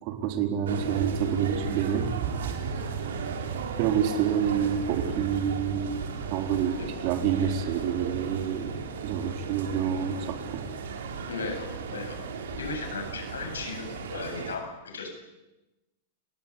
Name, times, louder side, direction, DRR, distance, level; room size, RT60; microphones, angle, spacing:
voice 1, 0.0-2.1 2.4-2.5 3.8-6.7 7.0-8.8 9.0-10.6, right 8 dB, 50° right, 6 dB, 4.1 m, -28 dB
sound 1, 0.6-14.6, right 6 dB, 80° right, 4.0 m, -35 dB
sound 2, 1.1-14.1, left 6 dB, 60° left, 7.5 m, -47 dB
voice 2, 11.3-12.2 12.6-15.1, left 4 dB, 90° left, 4 dB, 7.8 m, -36 dB
29.5 x 19.0 x 8.7 m, 1.0 s
hypercardioid pair, 115°, 0 cm